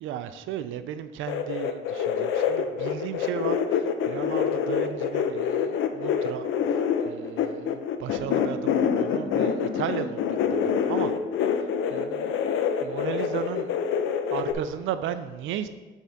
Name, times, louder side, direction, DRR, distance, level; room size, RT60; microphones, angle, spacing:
voice 1, 0.0-6.8 7.0-11.2 11.5-12.3 12.8-13.7 14.3-15.7, right 10 dB, 80° right, 11 dB, 0.4 m, -35 dB
sound 1, 1.3-14.5, left 7 dB, 85° left, 0.6 m, -26 dB
8.4 x 3.6 x 4.0 m, 1.3 s
cardioid pair, 90°, 20 cm